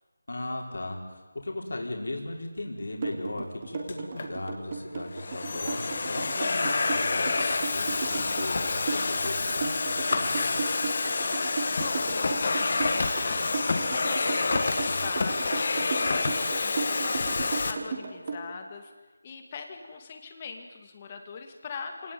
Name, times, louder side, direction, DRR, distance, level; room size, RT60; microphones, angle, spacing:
voice 1, 0.3-10.7, left 2 dB, 60° left, 1 dB, 4.9 m, -37 dB
sound 1, 3.0-18.4, right 4 dB, 25° right, 3.5 m, -34 dB
Domestic sounds home sounds, 3.9-4.3 5.0-17.7, left 3 dB, 35° left, 1.9 m, -28 dB
voice 2, 11.8-15.7 16.0-18.9 19.2-22.1, left 5 dB, 20° left, 5 dB, 2.3 m, -42 dB
28.0 x 19.0 x 9.4 m, 1.3 s
figure-of-eight pair, 175°, 0 cm